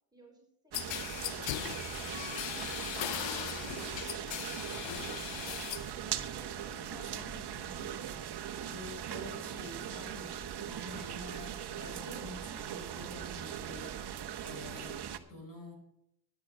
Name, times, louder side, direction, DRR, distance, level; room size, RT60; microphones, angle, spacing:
voice 1, 0.1-1.0, right 2 dB, 10° right, 1 dB, 5.4 m, -62 dB
sound 1, 0.7-6.0 6.3-6.9, left 12 dB, 65° left, 1.0 m, -39 dB
Rain on concrete at night, 0.7-15.2, right 9 dB, 55° right, 1.3 m, -40 dB
voice 2, 6.8-15.0 15.3-15.8, left 1 dB, 40° left, 2 dB, 5.6 m, -48 dB
12.5 x 9.8 x 5.5 m, 0.78 s
supercardioid pair, 75°, 49 cm